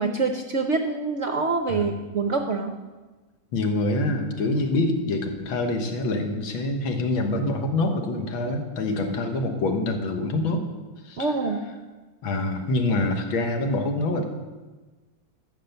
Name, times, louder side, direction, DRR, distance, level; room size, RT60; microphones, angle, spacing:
voice 1, 0.0-2.8 11.2-11.6, right 4 dB, 65° right, 5 dB, 0.7 m, -25 dB
voice 2, 3.5-10.6 11.0-11.3 12.2-14.2, left 2 dB, 85° left, 5 dB, 2.0 m, -25 dB
13.0 x 6.9 x 6.7 m, 1.3 s
omnidirectional pair, 2.1 m